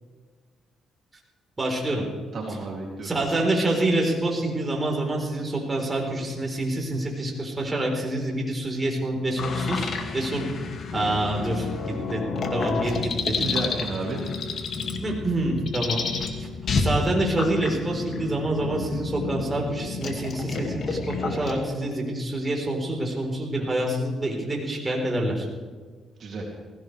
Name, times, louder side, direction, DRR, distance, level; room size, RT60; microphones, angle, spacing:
voice 1, 1.6-2.0 3.0-10.4 10.9-11.7 12.1-12.2 12.5-13.4 15.0-16.0 16.4-16.5 16.8-25.5, right 1 dB, 25° right, 0 dB, 4.0 m, -27 dB
voice 2, 2.3-3.1 12.7-12.9 13.3-14.3 26.2-26.4, right 3 dB, 55° right, -2 dB, 2.7 m, -32 dB
sound 1, 9.4-21.6, left 4 dB, 55° left, 2.1 m, -30 dB
19.5 x 16.5 x 3.4 m, 1.5 s
cardioid pair, 90°, 0 cm